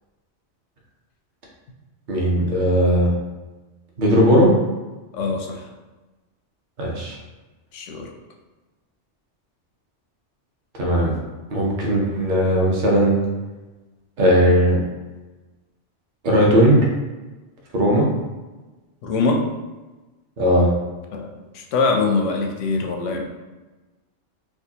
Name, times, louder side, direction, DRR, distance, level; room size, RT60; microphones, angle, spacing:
voice 1, 2.1-3.1 4.0-4.5 6.8-7.2 10.8-11.1 11.5-13.2 14.2-14.8 16.2-16.8 17.7-18.0 20.4-20.7, equal, 45° right, -2 dB, 0.9 m, -17 dB
voice 2, 5.1-5.6 7.7-8.1 19.0-19.5 21.1-23.2, left 3 dB, 90° left, 2 dB, 0.9 m, -23 dB
4.7 x 2.2 x 2.8 m, 1.2 s
omnidirectional pair, 1.2 m